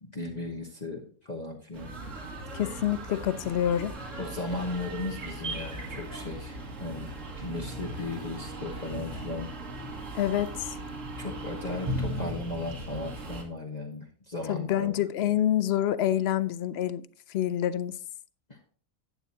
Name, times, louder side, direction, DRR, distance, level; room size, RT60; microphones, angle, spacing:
voice 1, 0.0-1.9 4.2-9.5 11.1-14.9 18.5-18.7, left 2 dB, 30° left, 1.2 m, -36 dB
sound 1, 1.7-13.4, right 1 dB, 65° right, 2.2 m, -38 dB
voice 2, 2.5-3.9 10.1-10.8 14.5-18.0, left 11 dB, 60° left, 0.7 m, -27 dB
11.0 x 8.9 x 2.8 m
omnidirectional pair, 1.4 m